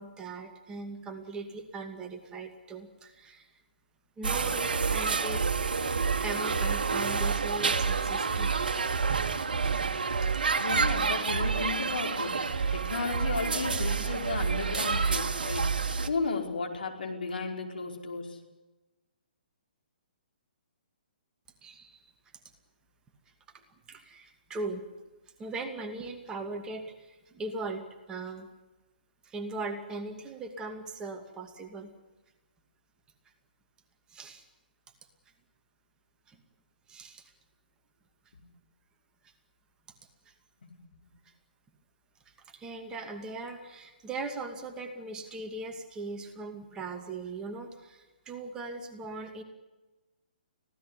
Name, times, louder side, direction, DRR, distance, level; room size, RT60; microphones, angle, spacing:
voice 1, 0.0-3.5 4.2-5.5 6.2-8.7 9.2-9.3 10.2-10.3 21.6-22.0 23.5-23.6 23.9-24.9 25.4-28.5 29.2-31.9 34.1-34.4 36.3-36.4 36.9-37.2 39.2-39.3 42.3-49.4, right 3 dB, 15° right, 4 dB, 2.4 m, -39 dB
sound 1, 4.2-16.1, right 5 dB, 65° right, 2.0 m, -28 dB
voice 2, 10.6-18.4 38.3-38.4 40.6-40.7, left 4 dB, 65° left, 2 dB, 5.2 m, -34 dB
25.0 x 17.0 x 9.9 m, 1.1 s
figure-of-eight pair, 130°, 5 cm